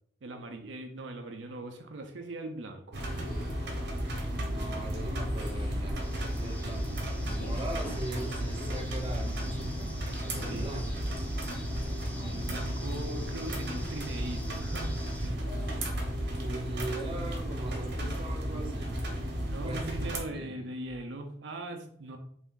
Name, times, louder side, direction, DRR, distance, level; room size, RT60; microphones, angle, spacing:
voice 1, 0.2-3.0 10.4-10.7 12.2-15.5 19.5-22.2, right 1 dB, 85° right, 5 dB, 0.5 m, -40 dB
sound 1, 2.9-20.2, equal, 65° right, 0.9 m, -34 dB
sound 2, 3.1-3.7 5.2-5.9 7.1-8.8 10.4-11.1 12.8-13.3 13.7-14.1 15.4-15.9, left 2 dB, 50° left, 1.1 m, -47 dB
voice 2, 4.3-9.9 10.2-11.3 12.1-12.9 16.4-18.9 19.6-20.7, right 2 dB, 30° right, 1 dB, 0.7 m, -41 dB
sound 3, 6.0-15.3, left 1 dB, 10° left, 0.5 m, -49 dB
3.4 x 2.6 x 3.6 m, 0.64 s
head